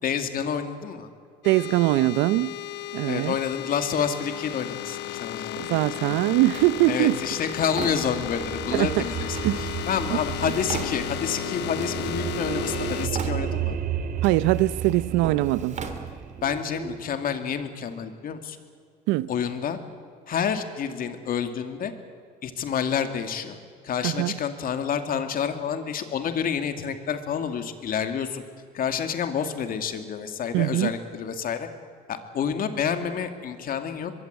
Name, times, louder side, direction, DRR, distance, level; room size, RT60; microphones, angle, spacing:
voice 1, 0.0-1.1 3.0-6.4 6.9-13.8 16.4-18.6 19.3-19.8 20.3-21.9 22.4-23.6 23.8-28.4 28.7-31.7 32.1-34.1, left 7 dB, 50° left, 2.5 m, -29 dB
sound 1, 1.4-13.1, left 14 dB, 70° left, 0.6 m, -34 dB
voice 2, 1.4-2.5 2.9-3.3 5.6-7.2 8.7-8.9 9.4-9.7 10.1-10.2 14.2-15.8 19.1-19.3 24.0-24.4 30.5-30.9, right 17 dB, 85° right, 0.8 m, -22 dB
Drawer open or close, 6.5-8.6 9.3-11.4 11.8-12.6 12.8-13.8 14.2-16.6, right 5 dB, 40° right, 2.9 m, -39 dB
sound 2, 7.5-17.0, right 8 dB, 55° right, 3.1 m, -33 dB
24.0 x 22.5 x 8.3 m
cardioid pair, 105°, 19 cm